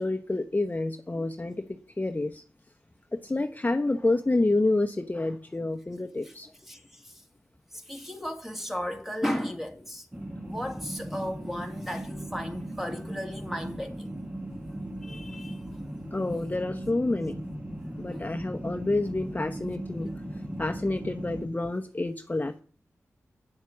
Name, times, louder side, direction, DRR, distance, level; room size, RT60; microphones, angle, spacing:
voice 1, 0.0-2.4 3.1-6.5 16.1-17.4 18.0-20.1 20.6-22.6, left 2 dB, 30° left, 0.9 m, -28 dB
voice 2, 6.7-7.2 7.7-10.1 10.4-14.1 15.0-15.6 18.1-18.3, equal, 5° right, 2.5 m, -35 dB
sound 1, 10.1-21.5, right 1 dB, 20° right, 2.0 m, -38 dB
9.7 x 7.4 x 7.2 m
cardioid pair, 45°, 5 cm